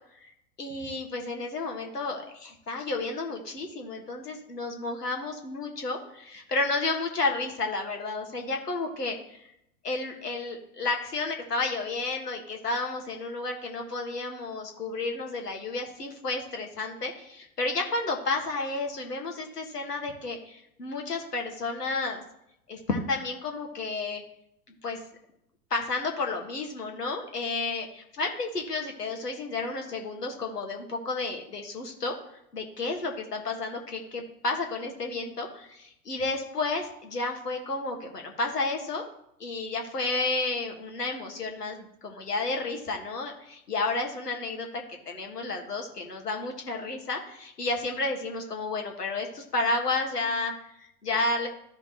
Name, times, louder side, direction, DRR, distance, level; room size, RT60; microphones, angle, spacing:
voice 1, 0.6-9.5 9.8-22.2 22.7-24.2 24.8-25.0 25.7-27.8 28.2-32.1 32.5-39.0 39.4-51.5, left 3 dB, 85° left, 2 dB, 1.7 m, -31 dB
13.0 x 5.3 x 3.0 m, 0.78 s
figure-of-eight pair, 95°, 46 cm